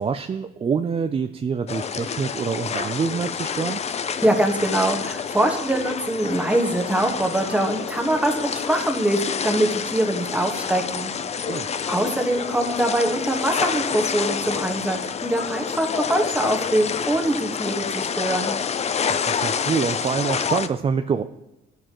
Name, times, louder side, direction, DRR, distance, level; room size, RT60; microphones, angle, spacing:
voice 1, 0.0-3.8 11.4-11.7 19.1-21.2, right 6 dB, 30° right, 8 dB, 0.4 m, -26 dB
sound 1, 1.7-20.7, left 6 dB, 35° left, 0.5 m, -28 dB
voice 2, 4.2-11.1 11.5-11.6 11.9-18.5, right 1 dB, 5° right, 2 dB, 1.4 m, -23 dB
13.5 x 6.5 x 3.0 m, 0.91 s
cardioid pair, 90°, 20 cm